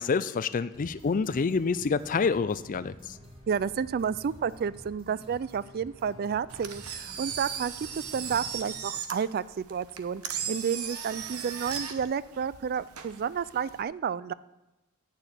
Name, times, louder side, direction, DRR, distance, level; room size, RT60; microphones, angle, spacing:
voice 1, 0.0-3.2, left 5 dB, 35° left, 15 dB, 0.4 m, -27 dB
sound 1, 0.7-8.7, equal, 25° right, 2.3 m, -50 dB
voice 2, 3.5-14.3, right 7 dB, 45° right, 18 dB, 0.3 m, -31 dB
Engine, 6.5-13.8, right 7 dB, 75° right, 1.0 m, -37 dB
9.1 x 6.9 x 8.1 m, 1.0 s
head